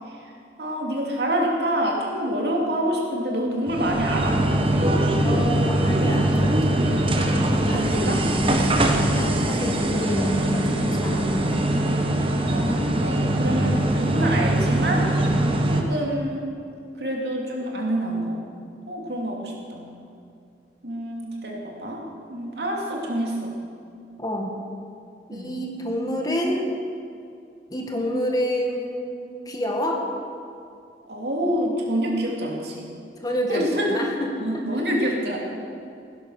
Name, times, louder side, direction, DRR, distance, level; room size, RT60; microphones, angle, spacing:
voice 1, 0.6-4.4 7.7-8.3 12.5-15.1 15.7-16.4 17.0-18.4 18.9-19.9 20.8-22.0 22.3-23.6 25.3-25.6 31.1-32.9 33.5-34.1 34.4-35.4, right 1 dB, 65° right, -1 dB, 2.8 m, -27 dB
sound 1, 3.7-15.8, right 1 dB, 30° right, 1.3 m, -22 dB
voice 2, 5.2-7.1 7.7-8.7 9.1-11.8 24.2-24.5 25.3-26.6 27.7-29.2 29.5-30.1 33.2-35.2, equal, 20° left, 1 dB, 1.7 m, -28 dB
16.5 x 10.5 x 6.6 m, 2.5 s
head